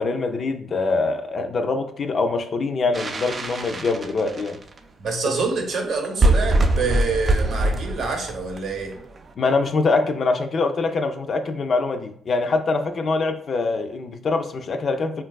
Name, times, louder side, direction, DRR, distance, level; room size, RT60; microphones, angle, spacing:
voice 1, 0.0-4.6 5.2-5.3 9.4-15.2, left 3 dB, 50° left, 6 dB, 0.3 m, -24 dB
sound 1, 2.9-4.8 5.5-5.6 5.8-5.9 6.0-9.2, right 2 dB, 35° right, 0.3 m, -22 dB
voice 2, 5.0-8.9, right 4 dB, 65° right, 2 dB, 0.7 m, -26 dB
3.7 x 2.3 x 2.3 m, 0.64 s
cardioid pair, 90°, 0 cm